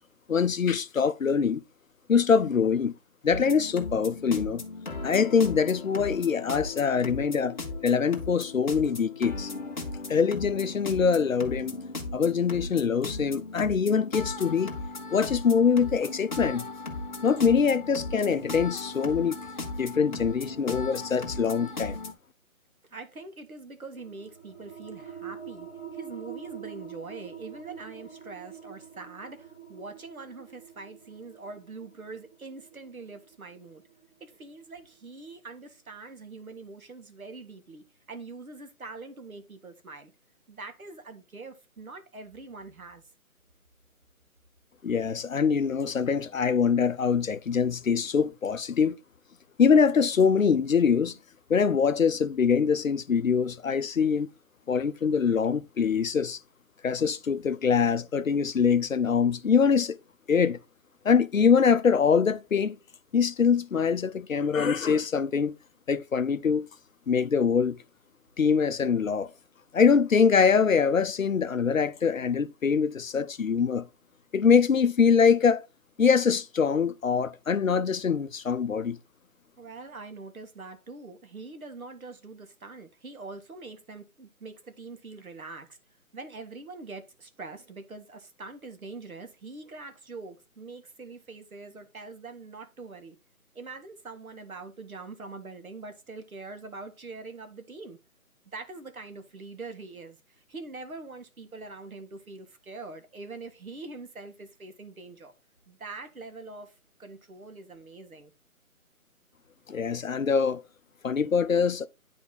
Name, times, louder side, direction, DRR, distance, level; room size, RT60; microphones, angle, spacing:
voice 1, 0.3-1.6 2.1-2.9 3.2-4.6 5.0-7.6 7.8-9.5 10.1-11.8 12.1-14.7 15.1-16.7 17.2-19.4 19.8-22.0 44.8-49.0 49.6-51.2 51.5-54.3 54.7-56.4 56.8-60.0 60.3-60.6 61.0-62.8 63.1-65.5 65.9-66.7 67.1-67.8 68.4-69.3 69.7-73.9 74.3-75.6 76.0-79.0 109.7-110.6 111.0-111.9, left 6 dB, 65° left, 0.7 m, -24 dB
sound 1, 3.3-22.1, left 3 dB, 30° left, 1.3 m, -37 dB
voice 2, 22.9-33.8 34.2-40.1 40.5-43.0 79.6-85.7 86.1-93.2 93.6-98.0 98.5-105.3 105.7-108.3, right 3 dB, 70° right, 1.8 m, -43 dB
sound 2, 24.0-35.2, right 8 dB, 10° right, 1.1 m, -46 dB
10.0 x 3.6 x 4.1 m
figure-of-eight pair, 170°, 44 cm